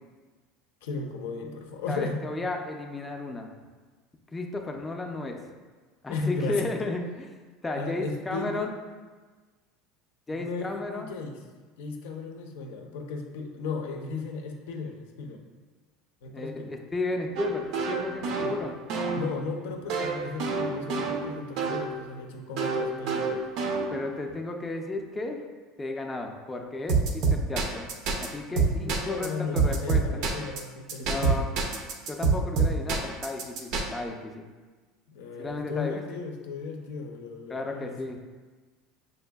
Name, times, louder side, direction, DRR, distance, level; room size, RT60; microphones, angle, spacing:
voice 1, 0.8-2.2 6.1-6.7 7.7-8.7 10.3-11.4 11.8-15.4 16.2-16.7 18.4-18.6 19.1-23.4 28.7-31.5 35.1-38.2, left 4 dB, 90° left, 4 dB, 0.5 m, -35 dB
voice 2, 1.9-3.5 4.3-5.4 6.0-7.3 7.6-8.7 10.3-11.1 16.3-18.7 23.9-25.4 25.8-27.9 28.2-30.0 31.1-31.5 32.1-34.5 35.4-36.0 37.5-38.2, left 2 dB, 15° left, 2 dB, 0.4 m, -33 dB
sound 1, 17.4-21.9 22.6-24.2 26.9-28.3 28.6-29.3 29.6-30.6 30.9-33.8, right 4 dB, 60° right, 0.5 m, -27 dB
6.3 x 2.5 x 2.2 m, 1.4 s
supercardioid pair, 140°, 0 cm